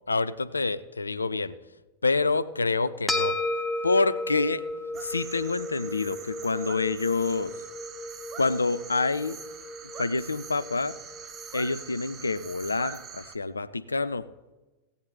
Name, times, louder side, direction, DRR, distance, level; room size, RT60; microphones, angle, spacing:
voice 1, 0.1-1.6 2.0-3.4 3.8-4.6 4.9-7.5 8.4-9.4 10.0-10.9 11.5-14.3, left 3 dB, 80° left, 14 dB, 0.4 m, -27 dB
sound 1, 3.1-11.7, left 1 dB, 5° left, 1.1 m, -34 dB
sound 2, 4.9-13.4, right 7 dB, 25° right, 0.7 m, -44 dB
16.0 x 8.6 x 4.0 m, 1.1 s
figure-of-eight pair, 90°, 0 cm